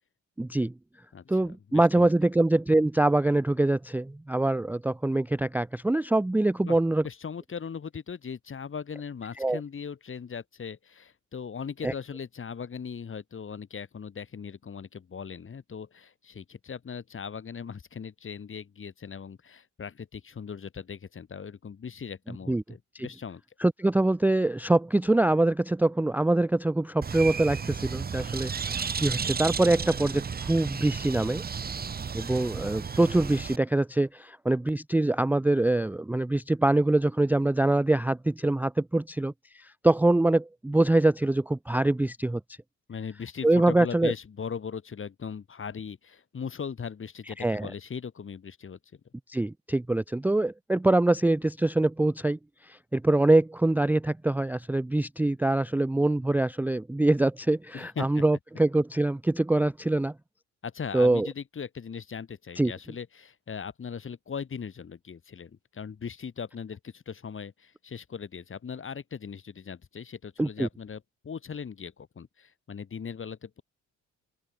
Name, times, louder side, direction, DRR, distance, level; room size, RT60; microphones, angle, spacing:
voice 1, 0.4-0.7 1.3-7.0 9.4-9.6 11.8-11.9 22.5-22.6 22.9-23.1 23.6-31.4 32.1-42.4 43.4-44.1 47.4-47.7 49.3-60.1 60.9-61.3 62.6-62.7 70.4-70.7, right 2 dB, 5° right, 0.5 m, -24 dB
voice 2, 1.1-2.1 6.6-6.8 7.0-23.4 42.9-48.8 57.7-58.2 60.6-73.6, left 6 dB, 45° left, 4.9 m, -39 dB
Bird, 27.0-33.6, right 6 dB, 30° right, 1.1 m, -33 dB
open air
cardioid pair, 90°, 30 cm